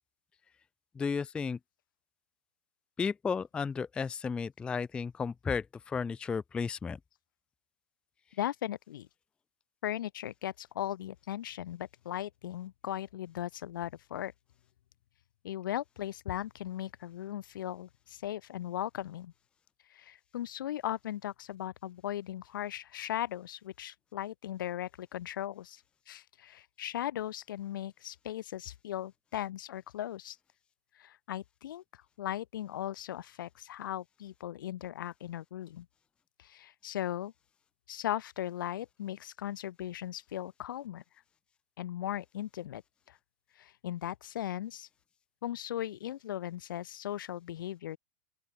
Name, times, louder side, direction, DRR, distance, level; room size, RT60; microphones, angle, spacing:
voice 1, 1.0-1.6 3.0-7.0, left 5 dB, 10° left, 0.3 m, -33 dB
voice 2, 8.4-9.1 9.8-14.3 15.4-19.3 19.9-30.4 31.0-31.8 32.2-35.9 36.4-37.3 37.9-41.0 41.8-42.8 43.1-43.2 43.6-44.9 45.4-48.0, left 12 dB, 80° left, 1.7 m, -38 dB
open air
supercardioid pair, 150°, 11 cm